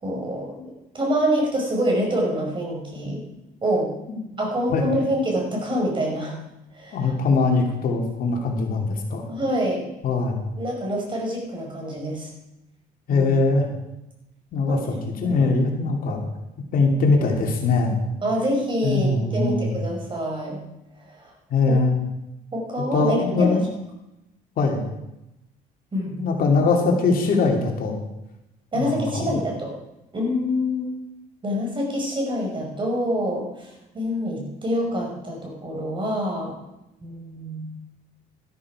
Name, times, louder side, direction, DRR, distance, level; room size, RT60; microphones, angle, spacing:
voice 1, 0.0-3.2 3.6-3.9 4.4-6.3 6.7-7.1 9.3-9.8 10.6-12.3 13.1-13.3 14.7-14.8 15.2-15.5 18.2-20.6 21.2-21.3 21.7-21.8 22.5-23.6 25.9-26.2 28.7-29.7 30.1-30.9 31.4-33.7 33.9-36.5 37.0-37.7, equal, 30° right, 0 dB, 5.3 m, -26 dB
voice 2, 6.9-9.3 10.0-10.4 13.1-13.7 14.5-16.2 16.7-17.9 18.8-19.7 21.5-22.0 22.9-23.6 24.6-24.8 26.2-28.0 28.7-29.4, left 3 dB, 55° left, 1 dB, 2.7 m, -21 dB
13.0 x 12.5 x 4.9 m, 0.91 s
cardioid pair, 110°, 17 cm